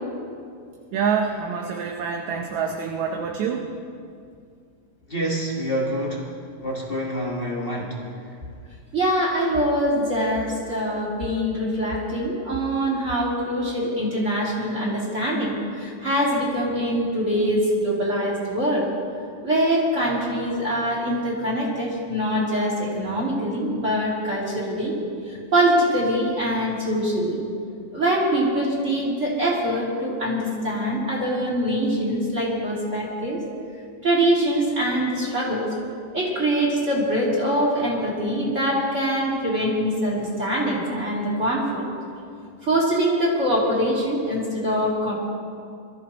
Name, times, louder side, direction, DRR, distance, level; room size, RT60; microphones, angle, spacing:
voice 1, 0.9-3.7, right 6 dB, 75° right, 2 dB, 2.1 m, -26 dB
voice 2, 5.1-6.3 6.6-8.0, equal, 50° left, -3 dB, 0.6 m, -27 dB
voice 3, 8.9-18.9 19.4-24.9 25.5-27.4 27.9-33.4 34.0-35.7 36.1-41.8 42.6-45.1, equal, 25° right, -5 dB, 3.1 m, -23 dB
23.5 x 14.0 x 3.0 m, 2.3 s
omnidirectional pair, 3.4 m